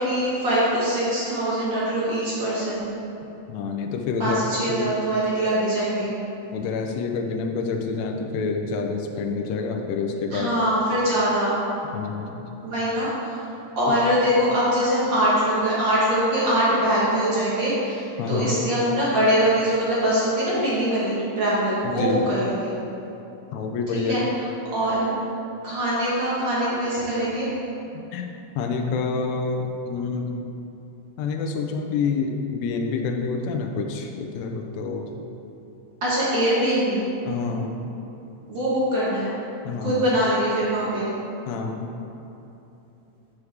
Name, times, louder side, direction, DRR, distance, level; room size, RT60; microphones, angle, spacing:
voice 1, 0.0-3.0 4.2-6.1 10.3-11.5 12.6-13.3 13.8-22.7 23.9-24.2 24.7-25.1 25.6-27.5 36.0-37.0 38.5-39.3 39.8-41.1, equal, 50° right, -9 dB, 1.5 m, -23 dB
voice 2, 3.5-4.4 4.7-4.9 6.5-10.5 11.9-12.5 13.9-14.0 18.2-18.5 21.8-22.3 23.5-24.3 28.1-28.3 28.5-30.3 31.2-35.2 37.2-37.9 39.6-40.0 41.5-41.9, left 4 dB, 85° left, 2 dB, 1.5 m, -27 dB
7.0 x 6.3 x 3.3 m, 2.9 s
omnidirectional pair, 3.7 m